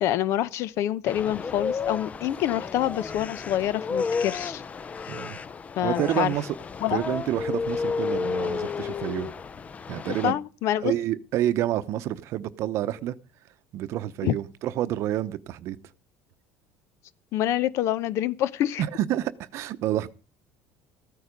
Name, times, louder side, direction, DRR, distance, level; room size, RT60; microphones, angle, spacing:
voice 1, 0.0-4.6 5.8-6.3 6.8-7.0 10.2-10.9 14.2-14.3 17.3-18.8, left 12 dB, 60° left, 0.7 m, -26 dB
sound 1, 1.1-10.3, left 5 dB, 25° left, 0.6 m, -32 dB
voice 2, 5.1-5.4 5.8-6.5 6.9-9.3 9.9-10.4 10.8-13.1 13.7-15.8 18.8-20.1, right 13 dB, 60° right, 0.8 m, -28 dB
14.0 x 9.6 x 5.1 m
supercardioid pair, 115°, 5 cm